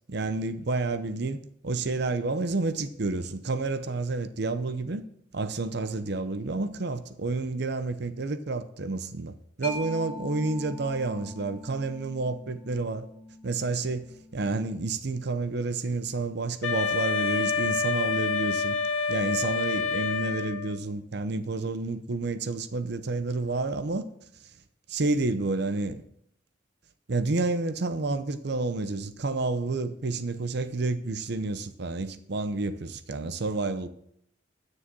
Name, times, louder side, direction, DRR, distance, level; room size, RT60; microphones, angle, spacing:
voice 1, 0.1-5.0 5.3-13.1 13.4-14.1 14.3-18.8 19.1-24.1 24.9-26.0 27.1-33.9, right 3 dB, 55° right, 0.7 m, -30 dB
Mallet percussion, 9.6-16.9, left 1 dB, 10° left, 2.2 m, -44 dB
Wind instrument woodwind instrument, 16.6-20.8, left 4 dB, 80° left, 0.7 m, -28 dB
9.8 x 6.5 x 6.1 m
head